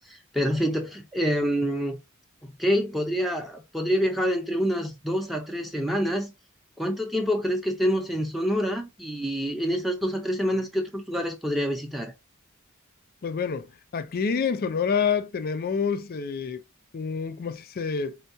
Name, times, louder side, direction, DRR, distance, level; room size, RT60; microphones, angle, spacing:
voice 1, 0.0-2.0 2.4-6.3 6.8-12.1, equal, ahead, 0.6 m, -27 dB
voice 2, 13.2-16.6 16.9-18.2, left 6 dB, 45° left, 0.4 m, -28 dB
4.4 x 2.3 x 2.6 m
head